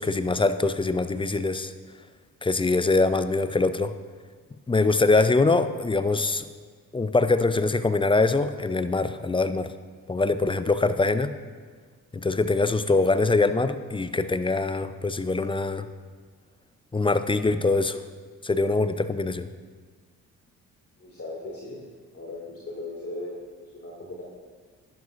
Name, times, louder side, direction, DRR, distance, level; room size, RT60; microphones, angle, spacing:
voice 1, 0.0-1.7 2.4-3.9 4.7-6.5 6.9-9.7 10.1-11.4 12.1-15.9 16.9-18.0 18.4-19.5, left 3 dB, 15° left, 12 dB, 0.5 m, -23 dB
voice 2, 21.0-21.8 22.1-24.2, left 2 dB, 35° left, -4 dB, 2.2 m, -38 dB
11.0 x 11.0 x 2.5 m, 1.5 s
hypercardioid pair, 45°, 42 cm